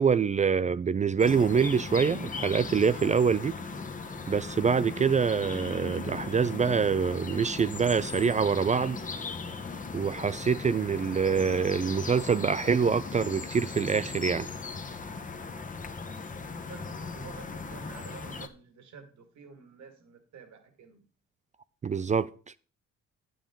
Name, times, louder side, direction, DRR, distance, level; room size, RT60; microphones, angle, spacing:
voice 1, 0.0-3.5 4.3-9.0 9.9-14.5 21.8-22.3, right 6 dB, 25° right, 0.3 m, -25 dB
sound 1, 1.2-18.5, left 4 dB, 25° left, 0.9 m, -38 dB
voice 2, 16.7-21.0, right 6 dB, 65° right, 2.0 m, -49 dB
9.2 x 8.9 x 3.7 m
cardioid pair, 90°, 30 cm